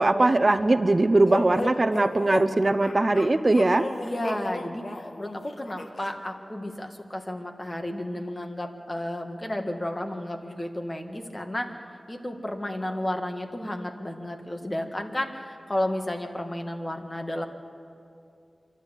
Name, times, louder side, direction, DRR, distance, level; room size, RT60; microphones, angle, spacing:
voice 1, 0.0-3.9, right 2 dB, 40° right, 10 dB, 0.6 m, -21 dB
sound 1, 1.3-6.1, left 2 dB, 65° left, 1.4 m, -34 dB
voice 2, 4.0-11.7 12.1-17.5, left 1 dB, 25° left, 4 dB, 1.8 m, -32 dB
26.0 x 12.5 x 8.2 m, 2.5 s
wide cardioid pair, 65°, 0 cm